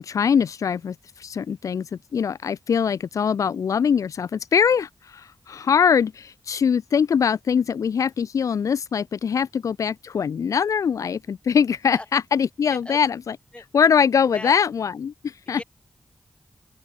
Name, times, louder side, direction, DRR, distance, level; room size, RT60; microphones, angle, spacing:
voice 1, 0.0-13.4 13.7-15.6, left 7 dB, 85° left, 0.7 m, -22 dB
voice 2, 11.9-12.1 12.7-13.0 13.5-13.6 14.3-14.5 15.5-15.6, left 1 dB, 20° left, 3.9 m, -37 dB
open air
cardioid pair, 45°, 5 cm